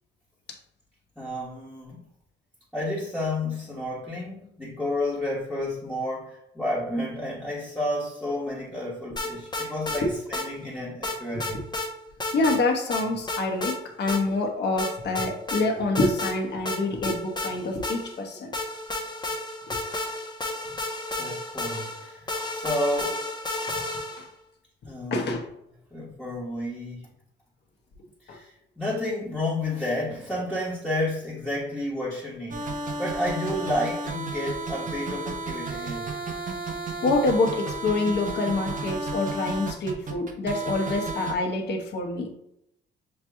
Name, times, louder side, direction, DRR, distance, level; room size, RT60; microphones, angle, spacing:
voice 1, 1.2-2.0 2.7-11.6 21.2-23.3 24.9-25.4 25.9-27.0 28.2-32.7 33.0-36.1, left 1 dB, 5° left, -8 dB, 1.3 m, -31 dB
sound 1, 9.2-10.0 10.3-10.5 11.0-11.9 12.2-12.6 12.9-13.8 14.1-14.2 14.8-15.6 15.9-16.4 16.7-18.2 18.5-24.3, left 2 dB, 20° left, 0.9 m, -32 dB
voice 2, 12.3-18.5 19.7-19.8 24.2-24.3 25.1-25.4 28.3-28.4 37.0-42.3, left 2 dB, 60° left, 2 dB, 1.1 m, -26 dB
sound 2, 32.5-41.3, right 2 dB, 40° right, 0.8 m, -32 dB
6.7 x 3.0 x 2.3 m, 0.78 s
cardioid pair, 90°, 20 cm